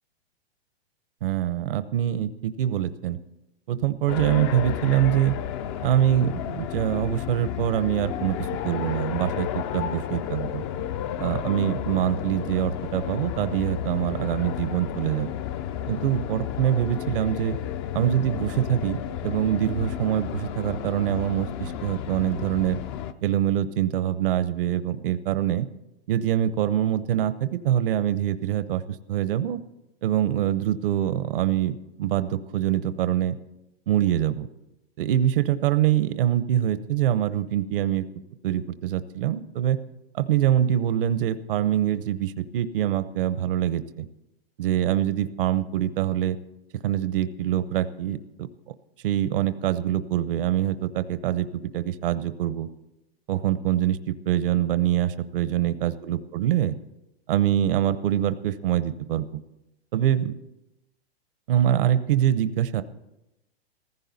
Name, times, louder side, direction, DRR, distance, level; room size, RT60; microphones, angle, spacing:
voice 1, 1.2-3.2 3.7-5.3 5.8-8.4 8.6-10.6 11.2-15.3 15.9-17.6 17.9-22.8 23.2-25.7 26.1-28.8 29.1-29.6 30.0-33.3 33.9-34.5 35.0-38.1 38.4-39.8 40.1-44.1 44.6-46.4 46.8-48.7 49.0-52.7 53.3-56.7 57.3-59.4 59.9-60.3 61.5-62.8, right 11 dB, 60° right, 13 dB, 0.8 m, -24 dB
sound 1, 4.1-23.1, left 10 dB, 25° left, 0.4 m, -32 dB
15.5 x 15.0 x 4.1 m, 0.92 s
hypercardioid pair, 145°, 32 cm